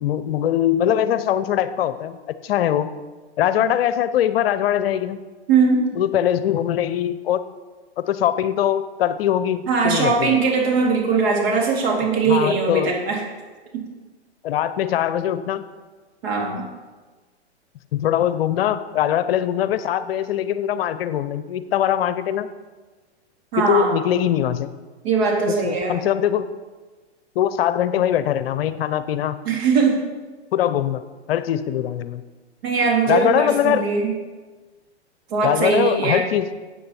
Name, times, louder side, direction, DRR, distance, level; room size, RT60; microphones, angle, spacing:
voice 1, 0.0-2.2 2.4-2.9 3.4-5.2 6.0-7.4 8.0-10.4 12.3-13.0 14.4-15.6 17.9-22.5 23.6-24.7 25.6-26.5 27.4-29.4 30.5-31.0 31.3-32.2 33.1-33.9 35.4-36.5, left 10 dB, 55° left, 13 dB, 0.7 m, -22 dB
voice 2, 5.5-5.9 9.7-13.2 13.7-13.9 16.2-16.7 23.5-23.9 25.0-26.0 29.5-30.1 32.6-34.1 35.3-36.3, right 4 dB, 60° right, -1 dB, 3.7 m, -20 dB
13.0 x 8.4 x 4.3 m, 1.3 s
hypercardioid pair, 115°, 35 cm